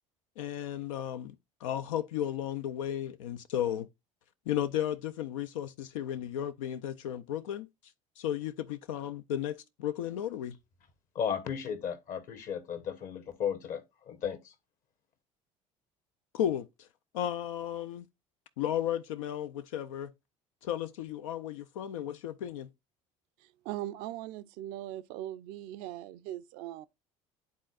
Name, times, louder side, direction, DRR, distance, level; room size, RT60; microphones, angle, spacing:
voice 1, 0.4-1.3 1.6-3.9 4.5-7.7 8.2-10.6 16.3-16.7 17.1-18.1 18.6-20.1 20.6-22.7, left 10 dB, 75° left, 0.4 m, -34 dB
voice 2, 11.1-14.5, left 8 dB, 55° left, 1.3 m, -35 dB
voice 3, 23.4-26.9, right 13 dB, 60° right, 0.5 m, -40 dB
11.5 x 3.9 x 2.4 m
figure-of-eight pair, 60°, 17 cm